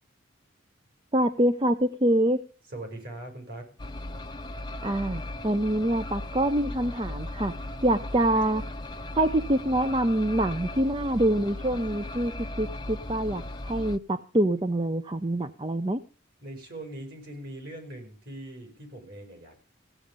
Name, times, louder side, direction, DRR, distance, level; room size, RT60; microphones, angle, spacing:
voice 1, 1.1-2.4 4.8-7.5 7.8-8.6 9.2-12.3 12.6-16.0, right 1 dB, 25° right, 9 dB, 0.7 m, -25 dB
voice 2, 2.7-3.7 16.4-19.6, right 1 dB, 50° right, 5 dB, 6.1 m, -41 dB
sound 1, 3.8-14.0, left 1 dB, 20° left, 0.8 m, -37 dB
16.5 x 8.7 x 5.2 m, 0.39 s
head